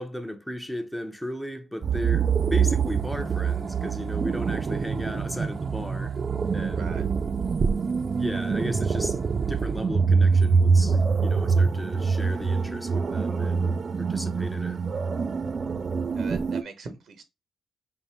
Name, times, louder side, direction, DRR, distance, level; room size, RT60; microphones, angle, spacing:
voice 1, 0.0-6.2 6.5-6.9 8.2-13.7 14.0-14.8, left 1 dB, 5° left, 0.7 m, -35 dB
sound 1, 1.8-16.6, right 5 dB, 45° right, 0.3 m, -25 dB
voice 2, 6.7-7.1 14.6-14.8 16.1-17.2, right 4 dB, 65° right, 1.0 m, -41 dB
3.5 x 2.7 x 4.3 m
supercardioid pair, 65°, 0 cm